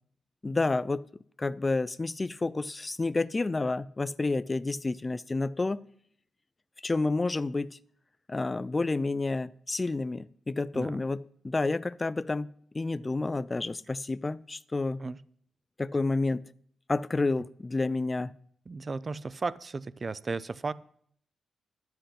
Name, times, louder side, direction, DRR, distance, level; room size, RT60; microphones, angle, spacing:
voice 1, 0.4-1.1 1.4-5.8 6.8-7.8 8.3-12.5 12.7-15.0 15.8-16.4 16.9-18.3, left 3 dB, 25° left, 0.4 m, -30 dB
voice 2, 18.7-20.7, right 4 dB, 35° right, 0.4 m, -35 dB
11.5 x 7.7 x 5.9 m
cardioid pair, 105°, 0 cm